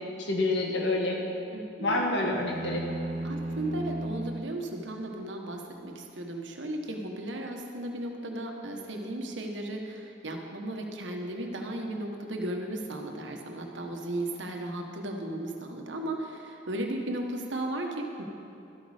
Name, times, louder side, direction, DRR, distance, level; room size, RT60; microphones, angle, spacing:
voice 1, 0.2-1.2 1.8-2.8, left 2 dB, 75° left, 0 dB, 1.5 m, -27 dB
voice 2, 1.5-2.0 3.2-18.2, right 1 dB, 90° right, 2 dB, 1.2 m, -35 dB
sound 1, 2.3-4.6, right 1 dB, 40° right, 0.7 m, -35 dB
13.0 x 8.2 x 5.0 m, 2.8 s
head